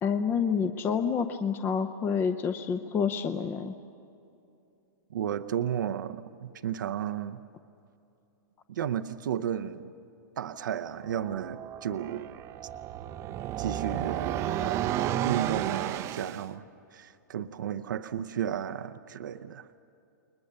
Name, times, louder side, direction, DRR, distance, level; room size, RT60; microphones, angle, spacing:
voice 1, 0.0-3.8, left 6 dB, 20° left, 8 dB, 0.7 m, -28 dB
voice 2, 5.1-7.4 8.7-9.9 10.4-12.3 13.6-16.6 16.9-19.7, right 9 dB, 85° right, 10 dB, 0.8 m, -33 dB
sound 1, 11.0-16.5, right 12 dB, 30° right, 0.6 m, -32 dB
29.5 x 21.0 x 6.7 m, 2.7 s
hypercardioid pair, 145°, 10 cm